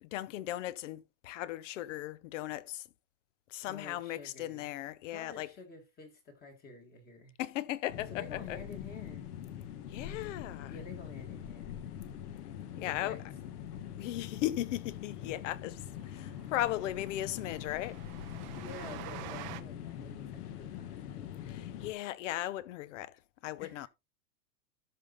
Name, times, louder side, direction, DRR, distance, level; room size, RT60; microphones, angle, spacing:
voice 1, 0.0-2.8 3.5-5.5 7.4-8.6 9.9-10.8 12.8-13.2 14.0-18.0 21.5-23.2 23.4-23.9, left 14 dB, 50° left, 0.7 m, -37 dB
voice 2, 3.6-4.7 5.1-7.4 8.1-9.3 10.7-11.8 12.7-13.2 18.5-21.0 23.6-23.9, left 4 dB, 20° left, 1.7 m, -49 dB
sound 1, 7.9-21.9, left 10 dB, 65° left, 1.7 m, -43 dB
Train, 15.0-15.1 15.4-15.5 15.8-15.9 16.2-19.6, right 15 dB, 30° right, 0.6 m, -47 dB
13.0 x 5.5 x 3.9 m
supercardioid pair, 165°, 50 cm